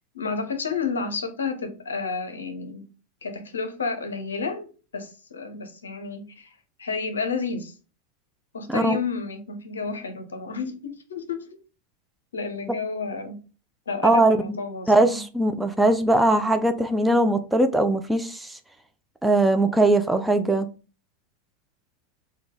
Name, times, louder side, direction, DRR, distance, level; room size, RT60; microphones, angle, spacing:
voice 1, 0.1-2.9 3.2-4.7 4.9-6.5 6.8-7.8 8.5-11.6 12.3-13.4 13.9-15.2, left 5 dB, 70° left, 0.6 m, -31 dB
voice 2, 14.0-14.6 14.9-18.6 19.2-20.7, right 2 dB, 5° right, 0.4 m, -20 dB
3.8 x 2.2 x 3.7 m
figure-of-eight pair, 90°, 0 cm